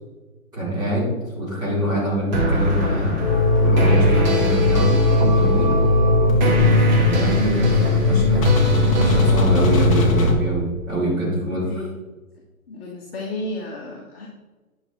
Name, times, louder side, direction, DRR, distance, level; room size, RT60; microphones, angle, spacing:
voice 1, 0.5-3.2 3.6-5.7 7.0-11.7, right 1 dB, 10° right, -9 dB, 3.4 m, -25 dB
sound 1, 2.3-9.7, right 1 dB, 30° right, 2.0 m, -25 dB
sound 2, 3.2-10.3, left 2 dB, 20° left, 1.2 m, -18 dB
voice 2, 12.7-14.3, left 2 dB, 40° left, -2 dB, 1.7 m, -32 dB
10.5 x 6.1 x 4.6 m, 1.2 s
hypercardioid pair, 165°, 44 cm